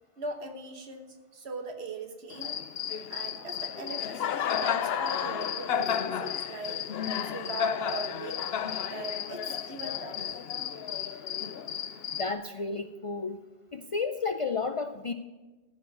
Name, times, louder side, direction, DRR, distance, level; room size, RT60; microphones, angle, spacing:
voice 1, 0.2-2.7 3.1-6.8 7.2-8.5 8.9-10.4, right 3 dB, 90° right, 6 dB, 1.5 m, -40 dB
Cricket, 2.3-12.3, left 8 dB, 75° left, 0.9 m, -32 dB
voice 2, 12.2-13.4 13.7-15.1, left 4 dB, 50° left, 8 dB, 0.4 m, -32 dB
14.0 x 4.7 x 8.4 m, 1.2 s
omnidirectional pair, 1.1 m